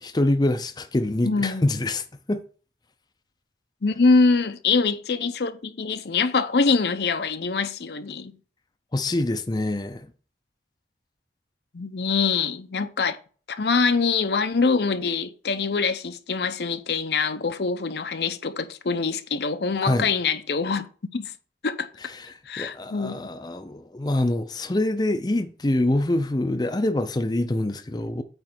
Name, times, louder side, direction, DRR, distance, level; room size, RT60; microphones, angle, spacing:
voice 1, 0.0-2.4 8.9-10.1 19.8-20.1 22.1-28.2, left 1 dB, 25° left, 0.5 m, -25 dB
voice 2, 1.2-1.7 3.8-8.3 11.7-13.2 13.5-20.9 21.1-21.3 21.6-21.9 22.5-23.2, left 4 dB, 70° left, 0.6 m, -24 dB
8.9 x 3.2 x 6.0 m
head